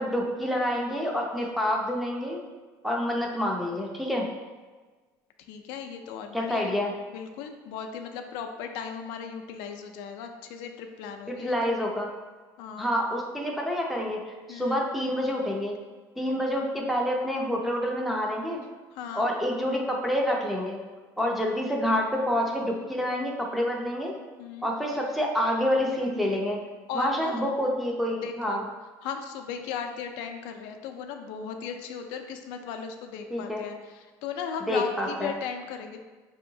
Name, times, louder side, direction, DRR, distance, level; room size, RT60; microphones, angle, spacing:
voice 1, 0.0-2.4 2.8-4.3 6.3-6.9 11.3-12.1 12.8-14.2 14.5-15.8 16.2-18.6 19.2-20.8 21.2-24.1 24.6-26.6 26.9-28.6 33.3-33.6 34.7-35.3, equal, ahead, -1 dB, 0.4 m, -27 dB
voice 2, 5.5-6.8 7.1-11.7 12.6-13.0 14.5-14.7 18.9-19.3 24.4-24.7 26.9-27.5 28.2-28.7 29.0-36.0, left 7 dB, 80° left, 5 dB, 0.4 m, -37 dB
5.3 x 2.8 x 2.7 m, 1.3 s
cardioid pair, 165°, 8 cm